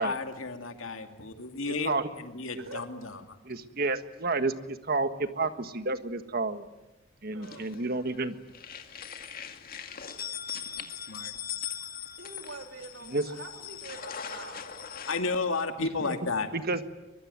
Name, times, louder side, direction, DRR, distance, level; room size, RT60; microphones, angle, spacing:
voice 1, 0.0-3.2 11.1-11.3 15.1-16.5, left 3 dB, 90° left, 6 dB, 2.3 m, -32 dB
voice 2, 3.4-6.6 7.2-8.3 13.1-13.2 16.0-16.2 16.5-16.8, right 3 dB, 50° right, 10 dB, 1.6 m, -30 dB
voice 3, 7.3-8.0 12.2-14.7, right 3 dB, 80° right, 4 dB, 3.6 m, -45 dB
sound 1, 7.4-8.2 8.5-15.2, left 8 dB, 45° left, 2.1 m, -40 dB
23.5 x 23.0 x 9.6 m, 1.0 s
head